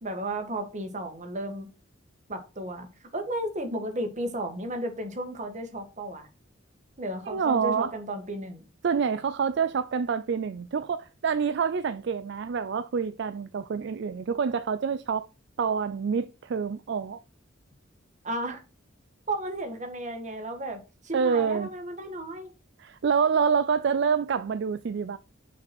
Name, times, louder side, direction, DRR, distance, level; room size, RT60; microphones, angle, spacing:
voice 1, 0.0-1.7 2.3-2.9 3.1-6.3 7.0-8.6 18.2-18.6 19.3-22.5, right 1 dB, 40° right, 1.6 m, -34 dB
voice 2, 7.3-7.9 8.8-15.3 15.6-17.2 21.1-21.7 22.8-25.2, right 6 dB, 60° right, 0.4 m, -27 dB
6.1 x 4.7 x 5.9 m
head